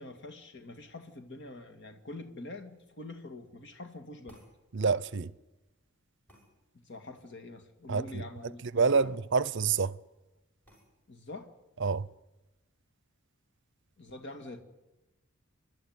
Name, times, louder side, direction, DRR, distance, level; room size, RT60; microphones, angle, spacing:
voice 1, 0.0-4.4 6.9-9.1 11.1-11.5 14.0-14.6, left 2 dB, 55° left, 2.3 m, -45 dB
sound 1, 4.3-4.6 6.3-6.5 8.9-9.1 9.5-9.6 10.6-10.9, equal, 10° left, 6.8 m, -58 dB
voice 2, 4.7-5.3 7.9-10.0 11.8-12.1, right 5 dB, 55° right, 0.6 m, -28 dB
29.0 x 12.0 x 9.6 m
head